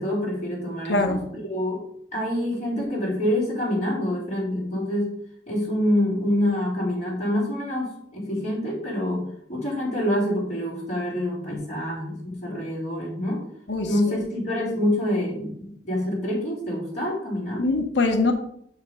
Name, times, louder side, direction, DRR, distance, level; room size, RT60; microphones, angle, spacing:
voice 1, 0.0-1.2 1.4-1.8 2.1-5.1 5.5-9.2 9.5-13.4 13.8-17.6, left 1 dB, 40° left, -6 dB, 3.5 m, -26 dB
voice 2, 0.9-1.3 13.7-14.2 17.6-18.3, left 2 dB, 80° left, 5 dB, 1.0 m, -23 dB
6.4 x 5.1 x 5.2 m, 0.69 s
head